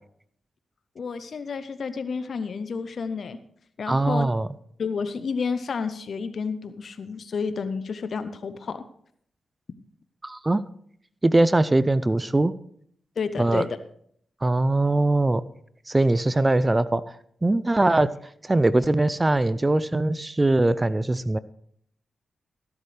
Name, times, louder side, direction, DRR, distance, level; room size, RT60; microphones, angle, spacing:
voice 1, 1.0-3.4 3.8-4.3 4.8-8.8 13.2-13.8, left 5 dB, 65° left, 11 dB, 0.8 m, -30 dB
voice 2, 3.9-4.5 10.2-10.6 11.2-12.5 13.4-13.7 14.4-15.4 15.9-17.2 17.4-18.1 18.4-21.4, right 2 dB, 25° right, 16 dB, 0.5 m, -21 dB
14.5 x 11.5 x 3.3 m, 0.65 s
cardioid pair, 55°, 0 cm